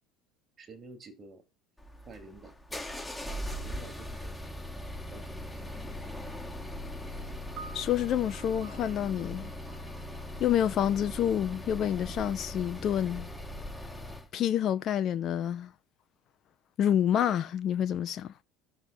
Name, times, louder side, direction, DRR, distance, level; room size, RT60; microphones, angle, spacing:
voice 1, 0.6-1.4 2.1-2.5 3.6-4.4 5.1-5.9 8.6-8.9, right 3 dB, 30° right, 2.7 m, -50 dB
sound 1, 1.8-14.3, left 1 dB, 5° left, 1.2 m, -40 dB
sound 2, 7.6-14.0, right 5 dB, 50° right, 1.3 m, -53 dB
voice 2, 7.7-9.5 10.4-13.3 14.3-15.7 16.8-18.3, left 10 dB, 40° left, 0.6 m, -28 dB
19.0 x 6.8 x 2.7 m
figure-of-eight pair, 70°, 0 cm